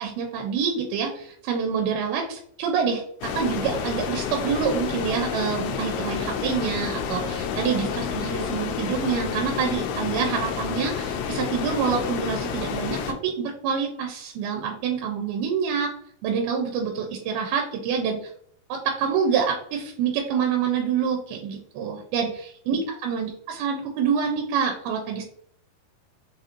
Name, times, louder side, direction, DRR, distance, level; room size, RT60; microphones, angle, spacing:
voice 1, 0.0-15.9 16.2-18.3 18.7-25.2, right 6 dB, 90° right, 3 dB, 2.5 m, -27 dB
sound 1, 3.2-13.1, left 7 dB, 90° left, 2.5 m, -29 dB
6.1 x 2.5 x 2.9 m, 0.64 s
omnidirectional pair, 4.3 m